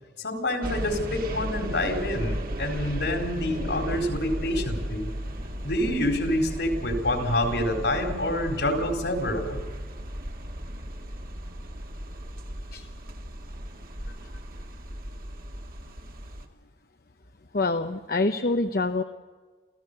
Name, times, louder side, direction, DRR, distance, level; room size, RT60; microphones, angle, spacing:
voice 1, 0.2-5.1 5.6-9.6, left 1 dB, 75° left, 4 dB, 4.2 m, -27 dB
sound 1, 0.6-16.5, equal, 55° right, 2.0 m, -35 dB
voice 2, 17.5-19.0, left 2 dB, 55° left, 7 dB, 0.9 m, -26 dB
27.5 x 15.5 x 6.8 m, 1.4 s
head